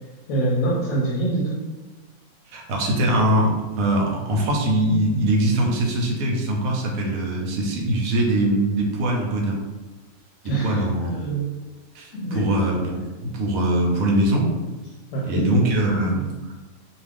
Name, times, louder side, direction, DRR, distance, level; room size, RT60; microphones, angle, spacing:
voice 1, 0.3-1.6 10.4-11.5 12.1-12.6 15.1-15.5 15.8-16.2, right 2 dB, 70° left, -4 dB, 1.0 m, -25 dB
voice 2, 2.5-9.6 10.6-11.1 11.9-14.5 15.3-16.3, right 1 dB, 75° right, 0 dB, 1.0 m, -22 dB
2.5 x 2.4 x 3.3 m, 1.2 s
omnidirectional pair, 1.5 m